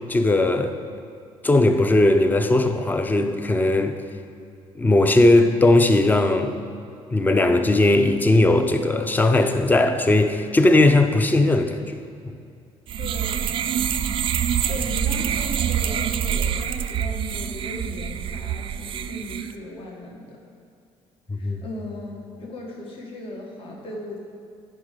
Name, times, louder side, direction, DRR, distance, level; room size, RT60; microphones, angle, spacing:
voice 1, 0.1-0.8 1.4-4.0 4.8-6.5 7.1-12.0 12.2-12.4 21.3-21.6, left 2 dB, 15° left, 8 dB, 0.6 m, -18 dB
sound 1, 12.9-19.5, right 9 dB, 50° right, 0.4 m, -26 dB
voice 2, 13.0-13.5 14.7-20.4 21.3-24.2, left 1 dB, 50° left, -1 dB, 1.4 m, -37 dB
10.0 x 5.5 x 5.1 m, 2.5 s
cardioid pair, 110°, 11 cm